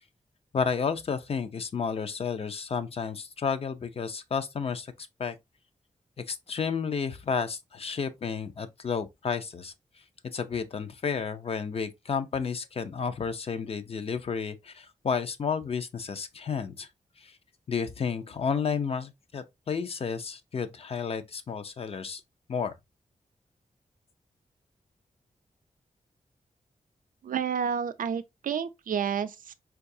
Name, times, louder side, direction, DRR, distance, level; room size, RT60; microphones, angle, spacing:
voice 1, 0.5-4.9 5.2-5.3 6.2-9.7 10.3-16.9 17.2-17.3 17.7-22.2 22.5-22.7, left 6 dB, 45° left, 0.5 m, -31 dB
voice 2, 27.2-29.5, right 7 dB, 80° right, 0.4 m, -30 dB
4.6 x 2.3 x 2.6 m
wide cardioid pair, 135°, 14 cm